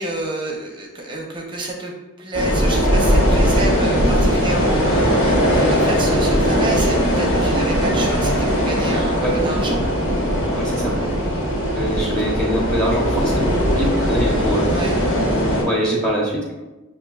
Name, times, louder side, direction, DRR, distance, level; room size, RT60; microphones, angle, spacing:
voice 1, 0.0-1.9 2.2-9.8 11.8-12.0 14.7-14.9, right 2 dB, 25° right, 0 dB, 0.6 m, -29 dB
sound 1, 2.3-15.6, equal, 85° left, 1.4 m, -19 dB
voice 2, 10.5-10.9 11.7-14.7 15.5-16.4, equal, 5° left, -3 dB, 0.8 m, -23 dB
7.0 x 2.6 x 2.3 m, 1.1 s
head